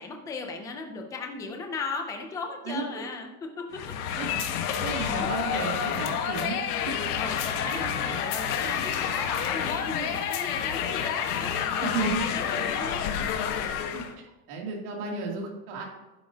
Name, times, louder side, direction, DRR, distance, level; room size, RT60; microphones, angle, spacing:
voice 1, 0.0-3.8 5.1-5.8 7.2-13.1, left 4 dB, 10° left, 3 dB, 0.3 m, -37 dB
sound 1, 3.7-14.1, left 8 dB, 80° left, 1.4 m, -29 dB
voice 2, 4.8-6.6 6.8-7.0 11.8-12.2 13.9-14.0 14.5-15.8, right 4 dB, 80° right, -1 dB, 2.8 m, -32 dB
11.5 x 9.5 x 2.8 m, 1.1 s
supercardioid pair, 175°, 44 cm